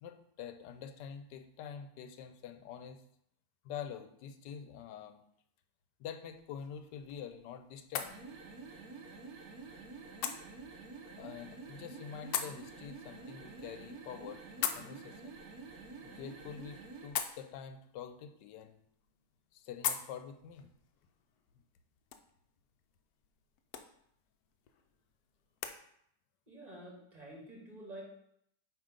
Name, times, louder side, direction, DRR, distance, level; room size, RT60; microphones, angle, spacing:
voice 1, 0.0-3.0 3.6-5.2 6.0-8.2 11.2-15.4 16.0-18.8 19.5-20.7 21.5-21.6, left 8 dB, 85° left, 7 dB, 1.2 m, -46 dB
sound 1, 6.3-25.8, left 9 dB, 70° left, 1.0 m, -45 dB
sound 2, 8.0-17.2, right 4 dB, 65° right, 1.4 m, -49 dB
voice 2, 26.5-28.0, right 1 dB, 25° right, -3 dB, 1.8 m, -49 dB
7.4 x 3.0 x 5.0 m, 0.71 s
omnidirectional pair, 1.8 m